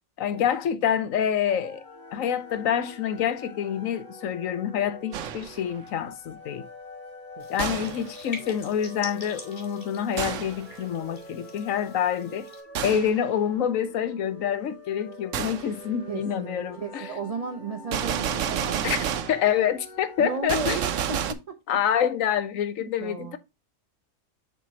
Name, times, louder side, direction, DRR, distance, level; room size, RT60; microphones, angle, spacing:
voice 1, 0.2-1.8 2.1-6.7 7.5-12.5 12.8-17.1 18.8-19.0 19.3-20.8 21.7-23.4, left 9 dB, 85° left, 1.2 m, -27 dB
sound 1, 1.4-20.4, left 1 dB, 10° left, 2.5 m, -45 dB
Gunshot gunfire, 5.1-5.6 7.6-8.1 10.2-10.6 12.7-13.2 15.3-15.7 17.9-19.5 20.5-21.3, right 9 dB, 75° right, 1.1 m, -29 dB
sound 2, 7.4-12.6, left 2 dB, 45° left, 2.0 m, -44 dB
voice 2, 7.4-8.4 16.1-19.0 20.2-21.6 22.8-23.4, right 4 dB, 35° right, 0.7 m, -35 dB
7.3 x 6.0 x 2.8 m
omnidirectional pair, 1.4 m